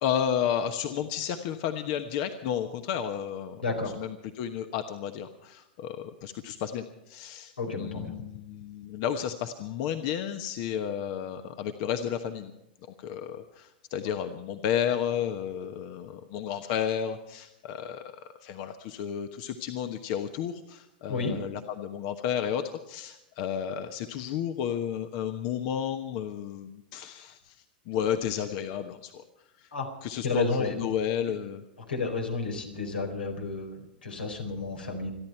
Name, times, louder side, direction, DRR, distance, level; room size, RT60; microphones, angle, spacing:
voice 1, 0.0-12.5 13.0-29.2 29.6-29.7 30.0-31.6, left 9 dB, 50° left, 8 dB, 1.1 m, -32 dB
voice 2, 3.6-3.9 7.6-8.1 21.1-21.4 29.7-29.9 30.2-30.8 31.9-35.1, left 3 dB, 90° left, 3 dB, 4.5 m, -31 dB
28.0 x 11.0 x 4.5 m, 0.90 s
hypercardioid pair, 110°, 5 cm